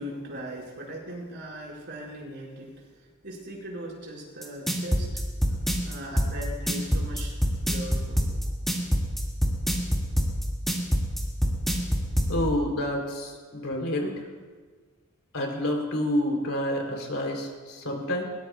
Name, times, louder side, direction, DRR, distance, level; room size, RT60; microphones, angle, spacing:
voice 1, 0.0-2.9 3.2-5.4 5.8-7.4 7.7-8.3, right 1 dB, 50° right, -4 dB, 5.3 m, -39 dB
sound 1, 4.4-12.3, equal, ahead, 2.1 m, -24 dB
voice 2, 12.3-14.1 15.3-18.2, left 1 dB, 70° left, 1 dB, 3.3 m, -28 dB
21.5 x 20.0 x 2.4 m, 1.5 s
head